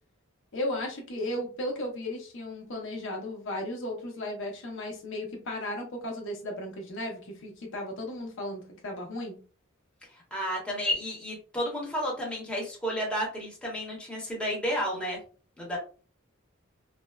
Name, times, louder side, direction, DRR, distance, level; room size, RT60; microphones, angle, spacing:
voice 1, 0.5-9.4, left 1 dB, 65° left, 1 dB, 0.7 m, -35 dB
voice 2, 10.3-15.2 15.6-15.8, equal, 5° left, -4 dB, 0.8 m, -31 dB
3.2 x 2.0 x 2.3 m, 0.38 s
head